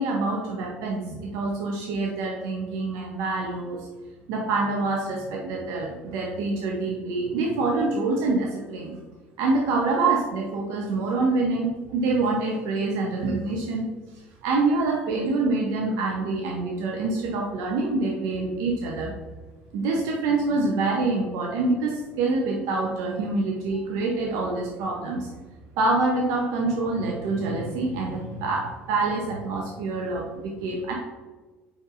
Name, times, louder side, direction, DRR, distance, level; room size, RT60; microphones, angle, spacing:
voice 1, 0.0-3.9 4.3-8.9 9.4-13.9 14.4-19.1 19.7-25.3 25.8-30.9, right 3 dB, 65° right, -1 dB, 0.7 m, -26 dB
4.6 x 4.4 x 2.4 m, 1.3 s
hypercardioid pair, 65°, 6 cm